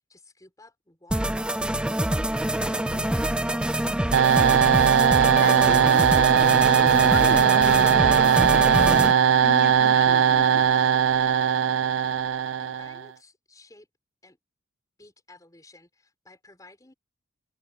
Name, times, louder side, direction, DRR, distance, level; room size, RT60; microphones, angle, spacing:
voice 1, 0.0-4.4 12.0-13.9 14.2-14.4 15.0-16.9, left 2 dB, 15° left, 4.0 m, -53 dB
sound 1, 1.1-9.1, right 1 dB, 5° right, 0.6 m, -26 dB
voice 2, 2.7-3.1 5.4-6.1 6.8-9.0 9.4-10.6, left 2 dB, 55° left, 2.0 m, -34 dB
sound 2, 4.1-13.0, right 8 dB, 65° right, 0.4 m, -19 dB
open air
head